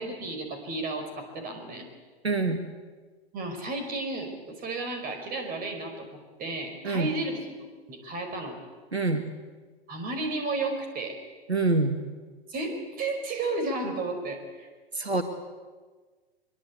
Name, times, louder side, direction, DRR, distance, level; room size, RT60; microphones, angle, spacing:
voice 1, 0.0-1.9 3.3-6.1 6.4-8.6 9.9-11.2 12.5-14.7, right 2 dB, 30° right, 6 dB, 5.1 m, -33 dB
voice 2, 2.2-2.7 6.8-7.1 8.9-9.2 11.5-12.0 14.9-15.2, right 3 dB, 85° right, 7 dB, 1.9 m, -25 dB
24.0 x 22.5 x 8.3 m, 1.4 s
figure-of-eight pair, 100°, 31 cm